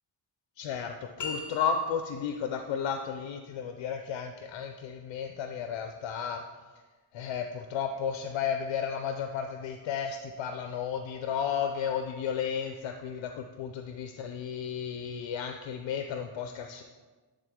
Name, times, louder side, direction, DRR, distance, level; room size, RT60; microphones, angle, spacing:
voice 1, 0.6-6.4 7.1-16.8, left 7 dB, 80° left, 6 dB, 0.6 m, -33 dB
sound 1, 1.2-2.3, left 3 dB, 40° left, 1.1 m, -39 dB
9.9 x 3.6 x 3.6 m, 1.3 s
cardioid pair, 55°, 45 cm